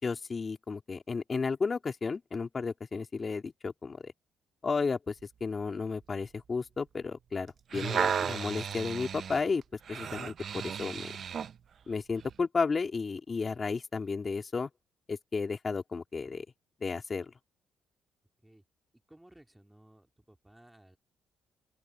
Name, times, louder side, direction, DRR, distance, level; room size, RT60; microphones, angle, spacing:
voice 1, 0.0-4.1 4.6-5.1 5.4-9.6 9.9-11.1 11.9-14.7 15.1-16.4 16.8-17.3, left 4 dB, 35° left, 3.3 m, -33 dB
sound 1, 7.5-11.6 12.2-12.3, right 7 dB, 55° right, 0.6 m, -34 dB
voice 2, 19.1-20.0 20.4-21.0, right 1 dB, 10° right, 3.3 m, -57 dB
open air
cardioid pair, 90°, 0 cm